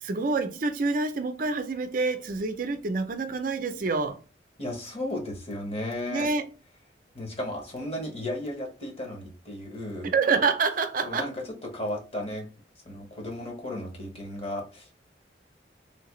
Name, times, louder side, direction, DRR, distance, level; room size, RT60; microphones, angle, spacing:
voice 1, 0.0-4.2 6.1-6.4 10.1-11.3, right 4 dB, 50° right, 0.5 m, -27 dB
voice 2, 4.6-6.3 7.1-10.1 11.0-12.5 12.8-15.0, left 1 dB, 35° left, 1.1 m, -34 dB
3.2 x 2.8 x 3.0 m
head